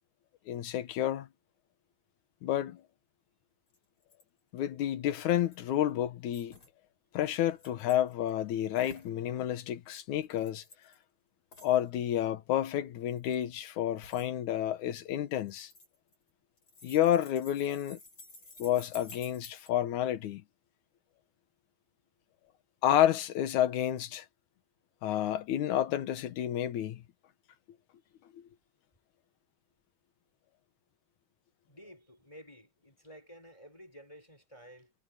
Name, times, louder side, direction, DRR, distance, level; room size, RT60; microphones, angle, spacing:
voice 1, 0.5-1.3 2.4-2.8 4.5-6.6 7.1-10.6 11.6-15.7 16.8-18.0 18.6-20.4 22.8-24.3 25.0-27.0, left 11 dB, 75° left, 2.6 m, -30 dB
sound 1, 3.7-3.8 4.0-4.2 5.1-5.8 6.3-6.7 7.5-8.3 8.8-9.1 10.2-11.0 11.5-11.8 13.0-13.4 14.0-14.3 15.5-16.3 16.6-19.7, left 2 dB, 40° left, 8.0 m, -53 dB
voice 2, 31.7-34.9, equal, 10° left, 6.8 m, -53 dB
omnidirectional pair, 3.5 m